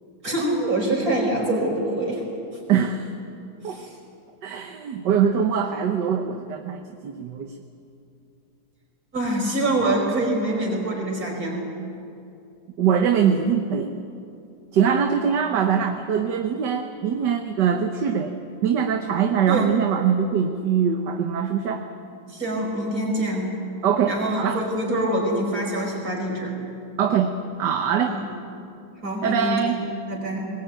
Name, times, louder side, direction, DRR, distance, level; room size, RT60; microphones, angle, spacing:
voice 1, 0.2-2.6 3.6-4.0 9.1-11.7 19.5-19.7 22.3-23.5 24.1-26.6 28.1-28.3 29.0-29.8 30.1-30.5, right 1 dB, 45° right, 0 dB, 5.0 m, -25 dB
voice 2, 2.7-3.1 3.6-3.8 4.4-7.6 12.8-13.9 14.7-18.4 18.6-21.8 23.8-24.6 27.0-27.3 27.6-28.2 29.2-29.8, right 7 dB, 65° right, 5 dB, 1.6 m, -22 dB
21.0 x 19.5 x 9.1 m, 2.6 s
omnidirectional pair, 2.1 m